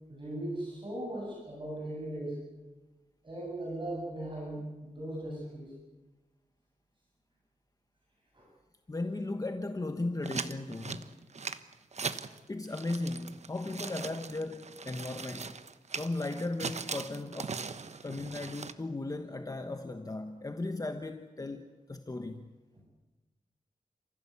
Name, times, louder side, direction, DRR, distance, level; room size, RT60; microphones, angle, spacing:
voice 1, 0.1-2.4 3.2-5.7 8.3-8.5 18.0-18.3, right 1 dB, 35° right, 7.8 m, -38 dB
voice 2, 8.9-11.1 12.5-15.5 16.0-17.6 18.0-22.5, left 2 dB, 25° left, 1.2 m, -36 dB
sound 1, 10.2-12.4 12.6-18.7, right 5 dB, 50° right, 1.1 m, -40 dB
29.5 x 16.0 x 8.4 m
wide cardioid pair, 115°, 14 cm